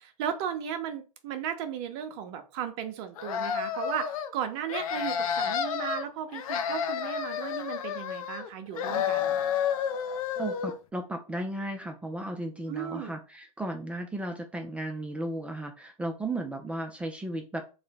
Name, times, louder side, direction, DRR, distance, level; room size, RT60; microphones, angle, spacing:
voice 1, 0.0-9.4 12.7-13.1, right 9 dB, 45° right, 8 dB, 0.7 m, -35 dB
sound 1, 3.2-4.3 4.7-6.0 6.3-8.5 8.8-10.8, left 8 dB, 65° left, 0.5 m, -30 dB
voice 2, 10.4-17.7, right 1 dB, 5° right, 4 dB, 0.3 m, -35 dB
3.2 x 2.1 x 3.9 m, 0.32 s
hypercardioid pair, 125°, 19 cm